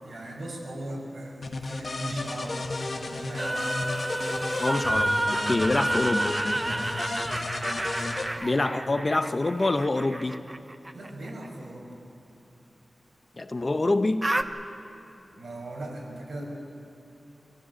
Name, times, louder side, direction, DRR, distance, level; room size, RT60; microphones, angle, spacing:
voice 1, 0.0-2.6 2.9-3.8 5.5-5.7 6.6-6.9 10.9-11.9 15.4-16.4, right 1 dB, 65° right, -1 dB, 5.7 m, -39 dB
sound 1, 1.4-8.3, left 2 dB, 55° left, 1.6 m, -33 dB
sound 2, 3.4-11.3 14.2-14.4, right 1 dB, 20° right, 0.8 m, -30 dB
voice 2, 4.6-6.3 8.4-10.4 13.4-14.3, left 2 dB, 35° left, 9 dB, 0.8 m, -26 dB
25.5 x 16.0 x 9.4 m, 2.7 s
wide cardioid pair, 120°, 0 cm